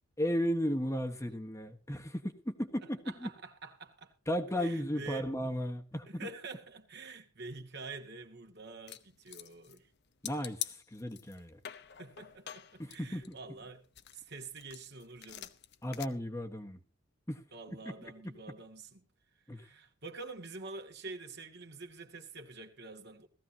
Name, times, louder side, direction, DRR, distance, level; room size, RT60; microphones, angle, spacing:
voice 1, 0.2-3.3 4.3-6.3 10.2-11.6 12.8-13.4 15.8-16.8 17.3-17.4 17.7-17.8 19.5-19.7, equal, 15° left, 1.4 m, -35 dB
voice 2, 3.1-4.1 4.6-5.3 6.1-9.9 12.0-13.9 14.1-15.5 17.5-19.0 19.5-23.3, right 3 dB, 50° right, 2.2 m, -47 dB
sound 1, 8.9-9.9 10.2-11.4 11.6-13.6 13.9-16.1, left 12 dB, 50° left, 0.9 m, -45 dB
18.0 x 15.0 x 2.9 m
head